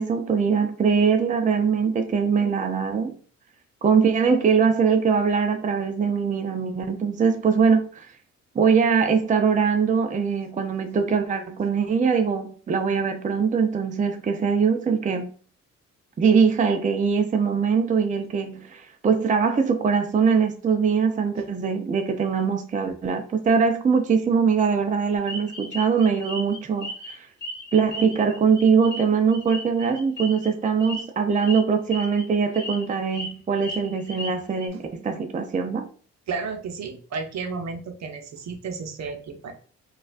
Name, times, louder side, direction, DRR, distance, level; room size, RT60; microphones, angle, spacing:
voice 1, 0.0-3.2 3.8-8.1 8.5-15.3 16.2-27.3 27.7-35.9, right 6 dB, 25° right, 0.5 m, -22 dB
sound 1, 25.3-27.1 27.4-30.5 30.8-31.0 31.4-31.6 31.9-32.2 32.5-33.3 33.6-34.7, equal, 30° left, 1.4 m, -36 dB
voice 2, 36.3-39.5, right 4 dB, 55° right, 0.8 m, -32 dB
3.9 x 2.4 x 2.5 m
supercardioid pair, 55°, 32 cm